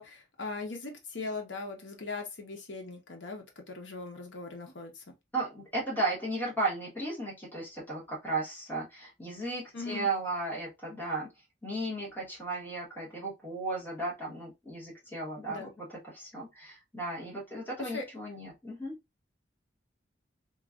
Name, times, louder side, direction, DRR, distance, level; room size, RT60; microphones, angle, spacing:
voice 1, 0.0-5.1 9.7-10.1 15.5-15.7 17.8-18.1, left 3 dB, 75° left, 0.8 m, -40 dB
voice 2, 5.3-11.3 11.6-19.0, right 2 dB, 10° left, 1.2 m, -35 dB
3.1 x 2.3 x 2.4 m
head